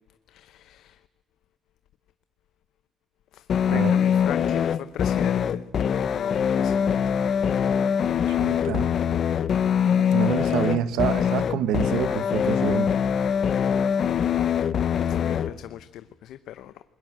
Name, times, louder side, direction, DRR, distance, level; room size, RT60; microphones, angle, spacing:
voice 1, 0.3-1.0 3.3-7.2 14.0-14.4 15.0-16.8, left 12 dB, 75° left, 0.8 m, -39 dB
sound 1, 3.5-15.5, left 8 dB, 45° left, 0.8 m, -23 dB
voice 2, 8.3-8.9 10.1-12.9, right 9 dB, 85° right, 1.4 m, -27 dB
29.5 x 21.0 x 7.6 m
cardioid pair, 150°, 0 cm